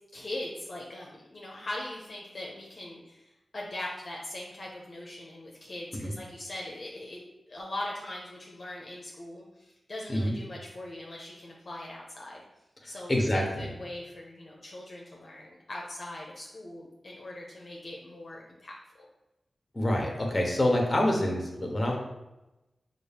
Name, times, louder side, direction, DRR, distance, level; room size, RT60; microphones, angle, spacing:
voice 1, 0.1-7.2 7.5-12.4 12.8-13.2 13.6-18.7, left 1 dB, 50° left, -2 dB, 0.7 m, -41 dB
voice 2, 12.8-13.7 19.7-22.0, left 1 dB, 25° left, 0 dB, 1.1 m, -27 dB
5.9 x 2.4 x 3.4 m, 0.98 s
wide cardioid pair, 70°, 0 cm